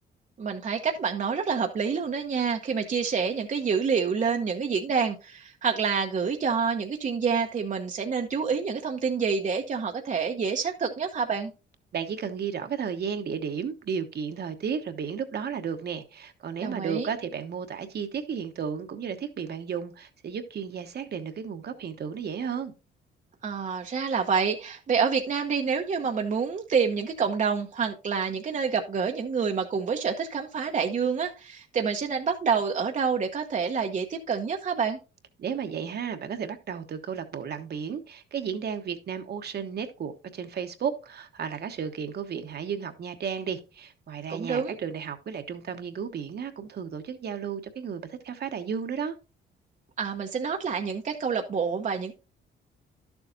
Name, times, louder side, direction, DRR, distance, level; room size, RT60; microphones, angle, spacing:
voice 1, 0.4-11.5 16.6-17.1 23.4-35.0 44.3-44.8 50.0-52.1, right 6 dB, 40° right, 0.9 m, -27 dB
voice 2, 11.9-22.7 35.4-49.2, right 7 dB, 55° right, 1.2 m, -33 dB
11.5 x 7.1 x 2.6 m
cardioid pair, 90°, 20 cm